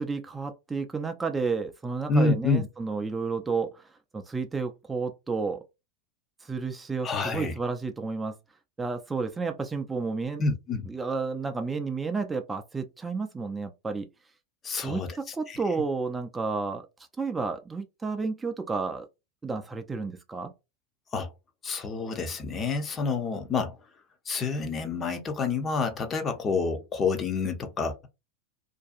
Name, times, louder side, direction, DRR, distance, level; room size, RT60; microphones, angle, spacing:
voice 1, 0.0-3.9 4.1-5.6 6.4-8.3 8.8-10.4 10.9-14.1 14.8-16.9 17.2-19.1 19.4-20.5, right 4 dB, 15° right, 0.4 m, -31 dB
voice 2, 2.1-2.7 7.0-7.6 10.4-10.9 14.6-15.6 21.1-21.3 21.6-23.8 24.3-28.1, left 4 dB, 30° left, 0.6 m, -28 dB
2.6 x 2.2 x 2.5 m
hypercardioid pair, 100°, 0 cm